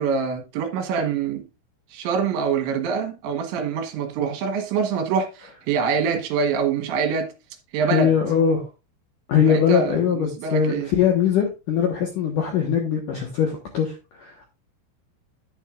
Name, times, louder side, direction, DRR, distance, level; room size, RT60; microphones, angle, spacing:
voice 1, 0.0-1.4 1.9-7.3 7.7-8.1 9.5-10.9, right 6 dB, 70° right, 3.4 m, -25 dB
voice 2, 7.9-8.7 9.3-14.5, left 7 dB, 70° left, 2.0 m, -21 dB
10.5 x 9.3 x 2.5 m
omnidirectional pair, 5.7 m